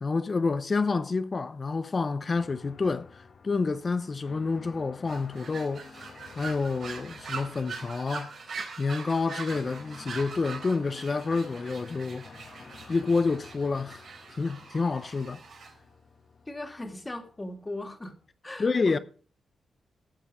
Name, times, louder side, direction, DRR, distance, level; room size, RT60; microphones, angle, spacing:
voice 1, 0.0-5.9 6.4-12.3 12.9-14.0 14.4-15.4 18.6-19.0, left 4 dB, 40° left, 0.6 m, -28 dB
sound 1, 2.3-18.3, left 5 dB, 55° left, 1.4 m, -52 dB
sound 2, 5.1-15.7, right 5 dB, 65° right, 4.0 m, -42 dB
voice 2, 16.5-18.2 18.4-19.0, left 2 dB, 20° left, 2.3 m, -38 dB
13.5 x 7.2 x 4.8 m
cardioid pair, 95°, 0 cm